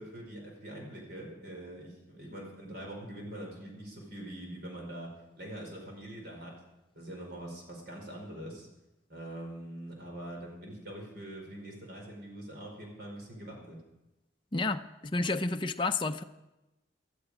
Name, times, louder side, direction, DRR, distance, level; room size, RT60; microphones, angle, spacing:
voice 1, 0.0-5.1 5.4-6.5 6.9-8.7 9.1-13.8, right 1 dB, 55° right, 0 dB, 4.9 m, -43 dB
voice 2, 14.5-16.2, left 3 dB, 25° left, 6 dB, 0.6 m, -30 dB
19.0 x 12.5 x 5.0 m, 0.98 s
head